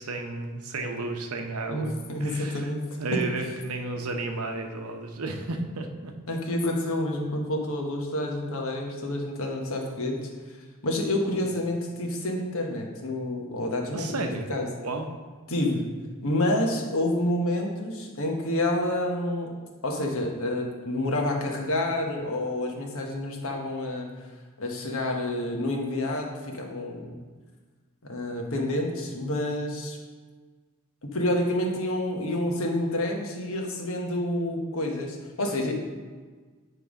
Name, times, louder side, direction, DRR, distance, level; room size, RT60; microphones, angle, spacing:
voice 1, 0.0-1.9 2.2-2.7 3.0-6.1 13.9-14.5 14.8-15.1, right 3 dB, 75° right, 4 dB, 0.8 m, -32 dB
voice 2, 1.7-2.8 6.3-10.3 10.8-14.7 15.5-15.9 16.2-19.5 19.8-24.1 24.6-27.1 28.1-30.0 31.1-35.7, left 1 dB, 65° left, 1 dB, 1.2 m, -28 dB
9.2 x 3.3 x 5.1 m, 1.4 s
head